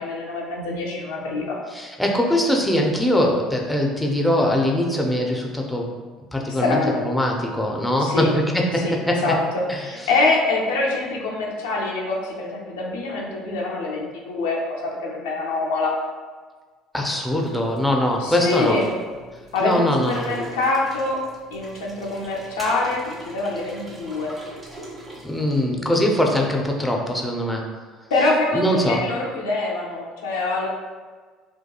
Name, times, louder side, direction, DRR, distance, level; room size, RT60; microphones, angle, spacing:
voice 1, 0.0-1.6 6.5-7.0 8.0-8.3 8.7-15.9 18.2-18.9 19.5-21.2 21.5-23.0 23.3-24.3 28.1-30.7, left 3 dB, 85° left, -2 dB, 0.5 m, -25 dB
voice 2, 1.7-5.9 6.3-9.4 9.7-9.8 16.9-18.8 19.6-20.3 25.2-27.6 28.5-29.0, left 1 dB, 5° left, 0 dB, 0.5 m, -22 dB
sound 1, 17.3-26.5, equal, 25° right, 0.8 m, -42 dB
2.8 x 2.2 x 2.2 m, 1.5 s
hypercardioid pair, 70°, 0 cm